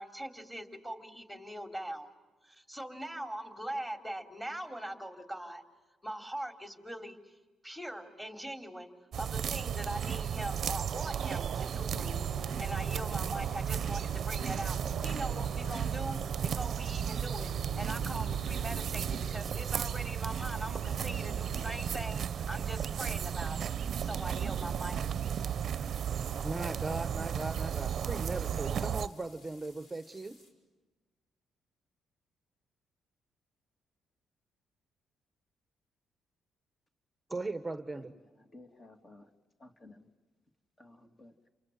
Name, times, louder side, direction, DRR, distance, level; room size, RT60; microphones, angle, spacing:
voice 1, 0.0-2.1 2.4-5.6 6.0-7.3 7.6-8.9 9.2-12.3 12.6-17.5 17.8-23.7 24.0-25.1, right 1 dB, ahead, 5 dB, 3.3 m, -41 dB
sound 1, 9.1-29.1, right 8 dB, 60° right, 0.7 m, -34 dB
sound 2, 11.9-22.1, left 7 dB, 90° left, 1.0 m, -51 dB
sound 3, 12.4-30.5, left 2 dB, 70° left, 5.8 m, -64 dB
voice 2, 26.4-30.4 37.3-38.1, right 2 dB, 15° right, 9 dB, 1.2 m, -38 dB
voice 3, 38.4-39.3 39.6-40.1 40.8-41.5, left 2 dB, 30° left, 5 dB, 2.7 m, -55 dB
30.0 x 24.0 x 7.8 m, 1.3 s
cardioid pair, 90°, 0 cm